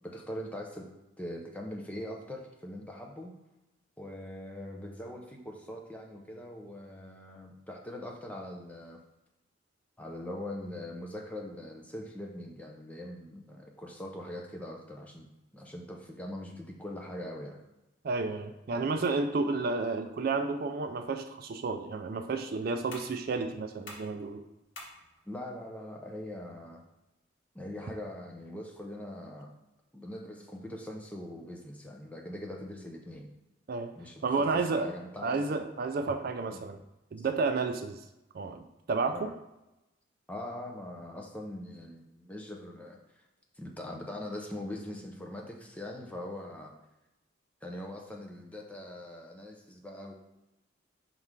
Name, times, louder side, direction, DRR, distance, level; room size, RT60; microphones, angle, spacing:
voice 1, 0.0-3.3 4.0-9.0 10.0-15.3 15.5-17.6 18.7-18.9 25.3-26.8 27.5-29.5 29.9-33.3 34.0-35.4 36.5-36.6 37.2-37.3 39.1-39.3 40.3-43.2 43.6-46.7 47.6-50.1, left 1 dB, 5° left, 1 dB, 0.6 m, -42 dB
voice 2, 18.0-24.4 33.7-33.9 34.2-34.9 35.2-36.8 37.1-38.0 38.3-39.3, right 4 dB, 50° right, 7 dB, 0.3 m, -31 dB
sound 1, 22.9-28.4, left 2 dB, 70° left, 1.4 m, -54 dB
5.4 x 4.7 x 3.7 m, 0.94 s
head